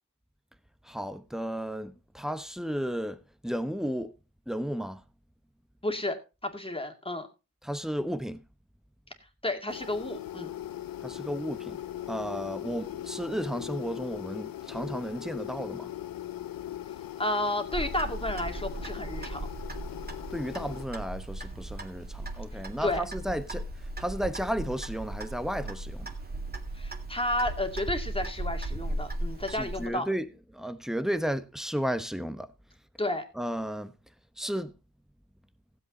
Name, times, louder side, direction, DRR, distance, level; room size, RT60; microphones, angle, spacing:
voice 1, 0.9-4.1 4.5-5.0 7.6-8.4 11.0-11.8 12.1-15.9 20.3-23.7 24.0-26.1 29.5-30.2 30.5-32.5 33.4-33.9 34.4-34.7, equal, ahead, 0.9 m, -33 dB
voice 2, 5.8-7.3 9.4-10.5 17.2-19.4 22.8-23.1 26.7-30.1 33.0-33.3, left 1 dB, 15° left, 2.3 m, -31 dB
sound 1, 9.7-20.8, left 12 dB, 70° left, 0.5 m, -39 dB
Clock, 17.7-29.9, right 1 dB, 25° right, 2.1 m, -37 dB
16.0 x 7.9 x 4.1 m
wide cardioid pair, 90°, 36 cm